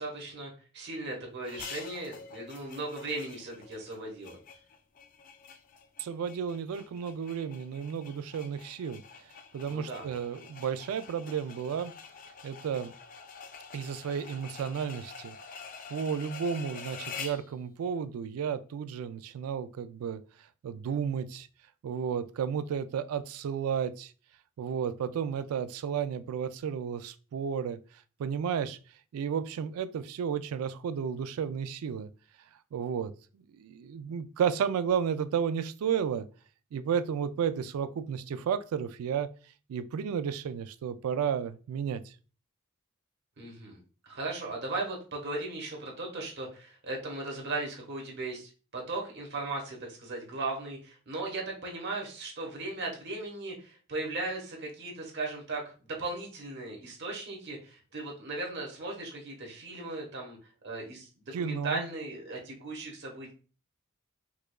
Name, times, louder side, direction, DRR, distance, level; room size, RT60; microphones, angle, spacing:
voice 1, 0.0-4.4 9.7-10.1 43.4-60.4 60.6-63.3, right 2 dB, 50° right, 1.0 m, -37 dB
sound 1, 1.4-17.5, left 6 dB, 40° left, 0.3 m, -47 dB
voice 2, 6.0-9.0 9.5-11.9 12.4-12.9 13.7-15.4 15.9-20.2 20.6-21.5 21.8-24.1 24.6-27.8 28.2-28.8 29.1-32.1 32.7-33.1 33.5-36.3 36.7-39.3 39.7-42.1 61.3-61.9, right 7 dB, 85° right, 0.3 m, -32 dB
4.8 x 2.3 x 2.2 m
head